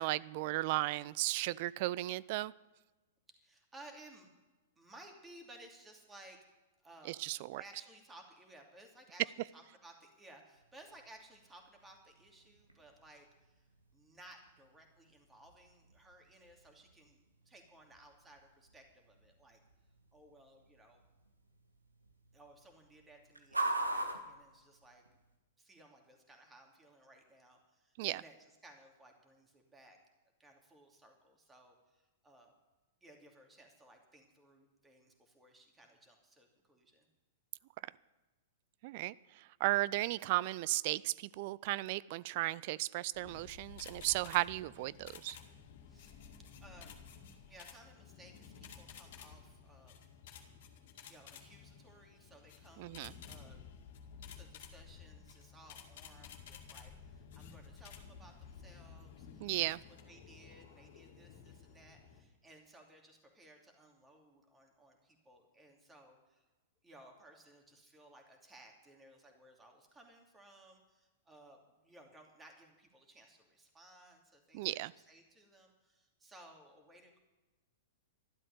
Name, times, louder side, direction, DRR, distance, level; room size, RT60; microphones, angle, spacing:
voice 1, 0.0-2.5 7.1-7.6 28.0-28.2 38.8-45.4 52.8-53.1 59.4-59.8 74.5-74.9, right 18 dB, 50° right, 21 dB, 0.3 m, -35 dB
voice 2, 3.4-4.3 4.8-6.4 6.8-7.2 7.6-19.6 20.1-21.0 22.3-25.0 25.6-30.0 30.4-32.5 33.0-37.1 45.9-46.2 46.6-47.0 47.5-50.0 51.1-52.9 53.3-53.6 54.3-59.8 60.1-66.5 66.8-77.2, right 1 dB, 15° right, 3 dB, 2.7 m, -59 dB
sound 1, 10.5-25.4, right 2 dB, 90° right, 1.7 m, -45 dB
sound 2, 43.1-62.2, left 7 dB, 55° left, 2.2 m, -54 dB
12.5 x 12.0 x 6.6 m, 1.2 s
figure-of-eight pair, 105°, 0 cm